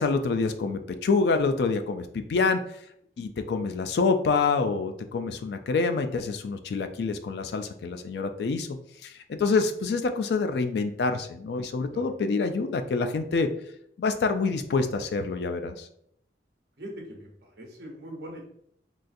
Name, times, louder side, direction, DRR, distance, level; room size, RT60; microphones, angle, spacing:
voice 1, 0.0-2.7 3.2-8.7 9.0-13.5 14.0-15.9, left 4 dB, 60° left, 8 dB, 0.3 m, -26 dB
voice 2, 16.8-18.4, equal, 60° right, -1 dB, 0.9 m, -41 dB
3.8 x 2.4 x 2.5 m, 0.69 s
head